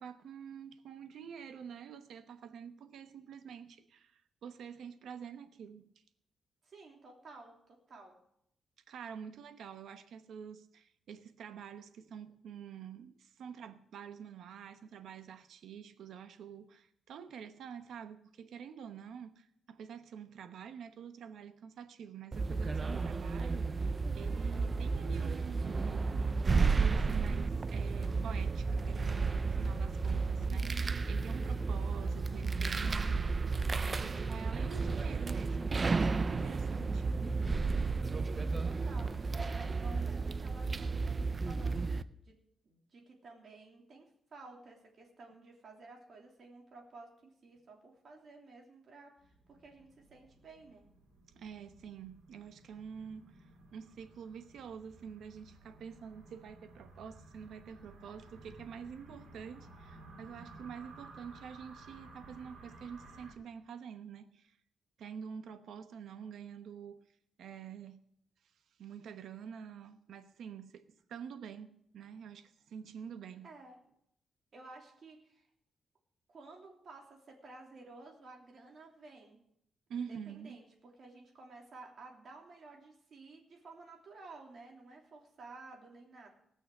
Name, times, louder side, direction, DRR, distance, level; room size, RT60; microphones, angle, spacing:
voice 1, 0.0-5.9 8.9-23.9 24.1-26.1 26.6-30.7 31.1-33.3 33.9-37.1 51.2-64.6 65.0-67.0 67.4-68.0 68.8-73.5 79.9-80.6, right 7 dB, 80° right, 0.9 m, -47 dB
voice 2, 6.6-8.2 38.2-39.2 39.5-42.4 42.6-50.8 73.4-73.8 74.5-75.5 76.3-79.4 80.0-86.3, right 3 dB, 50° right, 3.1 m, -54 dB
sound 1, 22.3-42.0, right 4 dB, 30° right, 0.5 m, -32 dB
sound 2, 49.2-63.3, right 2 dB, 65° right, 3.5 m, -56 dB
18.5 x 6.4 x 6.6 m
wide cardioid pair, 140°, 0 cm